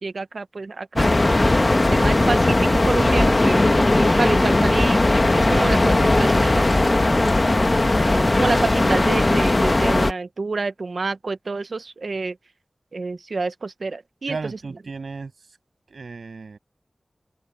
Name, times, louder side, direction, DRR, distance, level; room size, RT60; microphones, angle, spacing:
voice 1, 0.0-5.0 5.3-7.2 7.8-12.4 12.9-14.4, right 3 dB, 70° right, 1.0 m, -28 dB
sound 1, 1.0-10.1, left 2 dB, 35° left, 1.2 m, -18 dB
voice 2, 14.3-15.6 15.9-16.6, right 4 dB, 90° right, 6.6 m, -35 dB
open air
wide cardioid pair, 75°, 0 cm